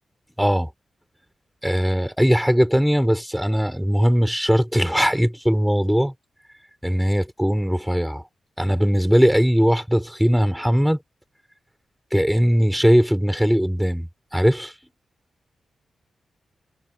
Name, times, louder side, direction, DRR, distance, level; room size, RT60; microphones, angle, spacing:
voice 1, 0.4-0.7 1.6-6.1 6.8-8.2 8.6-11.0 12.1-14.7, equal, ahead, 4.5 m, -19 dB
wide cardioid pair, 175°, 0 cm